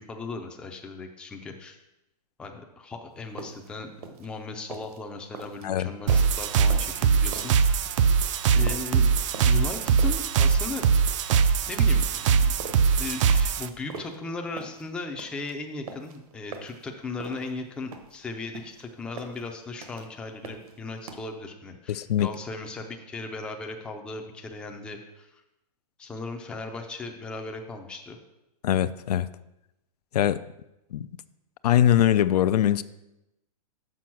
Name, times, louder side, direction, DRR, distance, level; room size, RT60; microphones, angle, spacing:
voice 1, 0.0-1.8 2.4-3.9 4.2-7.9 8.5-10.9 11.7-12.5 12.9-25.4 26.0-28.2, left 3 dB, 5° left, 3 dB, 0.4 m, -37 dB
sound 1, 3.2-21.2, right 4 dB, 65° right, 1.0 m, -43 dB
sound 2, 6.1-13.7, right 6 dB, 50° right, 0.5 m, -22 dB
voice 2, 21.9-22.3 28.6-29.3 30.1-30.4 30.9-31.1 31.6-32.8, left 11 dB, 80° left, 15 dB, 0.4 m, -22 dB
6.2 x 5.2 x 5.9 m, 0.92 s
hypercardioid pair, 155°, 20 cm